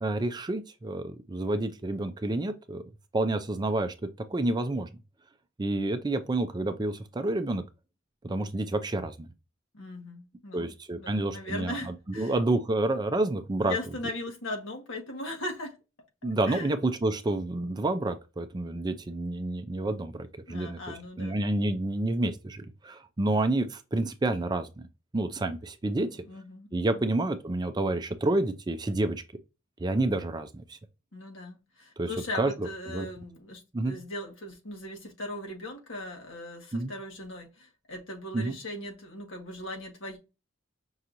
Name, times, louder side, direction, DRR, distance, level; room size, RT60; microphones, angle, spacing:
voice 1, 0.0-2.8 3.1-3.9 4.3-4.9 5.6-7.6 8.2-9.3 10.5-11.8 12.2-13.8 16.2-20.8 21.2-24.7 25.1-26.2 26.7-29.2 29.8-30.8 32.0-32.1 32.4-32.5 32.9-33.1 33.7-34.0 36.7-36.9 38.3-38.6, right 2 dB, 20° right, 0.4 m, -29 dB
voice 2, 9.7-12.3 13.6-15.8 16.2-16.7 20.5-21.4 26.0-27.0 31.1-40.2, left 1 dB, 70° left, 1.4 m, -39 dB
5.5 x 2.8 x 2.5 m
head